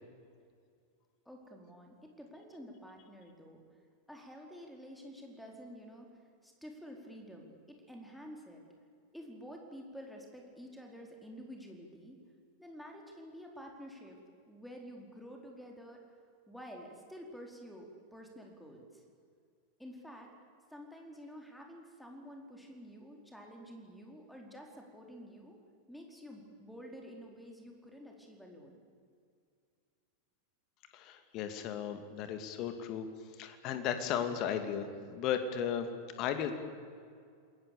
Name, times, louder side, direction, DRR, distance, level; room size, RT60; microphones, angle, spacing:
voice 1, 1.3-3.6 4.1-8.6 9.1-12.2 12.6-14.2 14.5-16.0 16.5-19.0 19.8-20.3 20.7-25.6 25.9-28.8, equal, ahead, 1 dB, 4.4 m, -50 dB
voice 2, 30.9-33.1 33.4-35.9 36.2-36.5, left 8 dB, 40° left, 8 dB, 2.6 m, -35 dB
28.5 x 21.5 x 7.1 m, 2.2 s
figure-of-eight pair, 90°, 0 cm